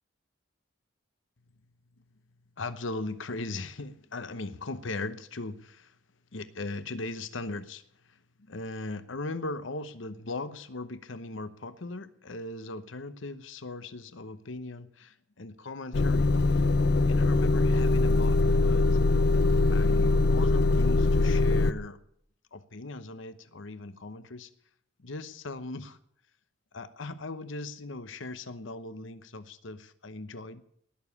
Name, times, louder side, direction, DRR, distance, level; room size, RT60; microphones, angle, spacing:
voice 1, 2.6-5.9 6.3-8.2 8.5-16.3 17.1-18.9 19.7-22.0 22.5-24.5 25.0-26.0 26.7-30.6, left 2 dB, 75° left, 13 dB, 0.9 m, -38 dB
Motor vehicle (road) / Engine starting / Idling, 15.9-21.7, left 3 dB, 55° left, 0.6 m, -22 dB
18.5 x 7.2 x 9.6 m, 0.68 s
head